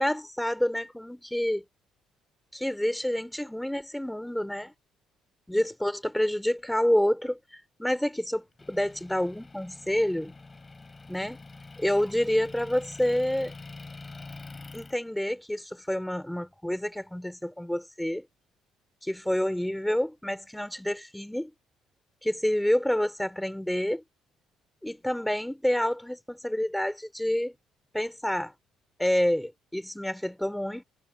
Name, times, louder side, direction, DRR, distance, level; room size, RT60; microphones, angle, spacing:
voice 1, 0.0-1.6 2.5-4.7 5.5-7.4 7.8-10.3 11.1-11.4 11.8-13.5 14.7-18.3 19.0-21.5 22.2-24.0 24.8-27.6 27.9-28.5 29.0-30.8, left 1 dB, 5° left, 4.2 m, -28 dB
Motor vehicle (road) / Engine, 8.6-14.9, left 3 dB, 25° left, 3.9 m, -45 dB
supercardioid pair, 70°, 0 cm